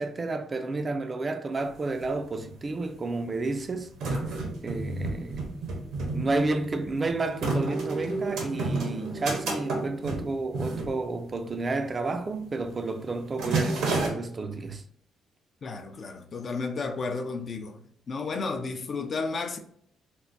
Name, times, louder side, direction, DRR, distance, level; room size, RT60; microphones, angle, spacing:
voice 1, 0.0-3.9 4.6-5.5 6.1-14.8, right 3 dB, 30° right, 0.4 m, -31 dB
sound 1, 1.6-1.7 1.9-2.7 3.3-11.6 11.9-12.2 12.5-12.8 13.1-14.1, right 3 dB, 80° right, 1.0 m, -31 dB
voice 2, 15.6-17.8 18.1-19.6, left 4 dB, 45° left, 0.5 m, -32 dB
4.3 x 2.1 x 2.5 m
cardioid pair, 95°, 0 cm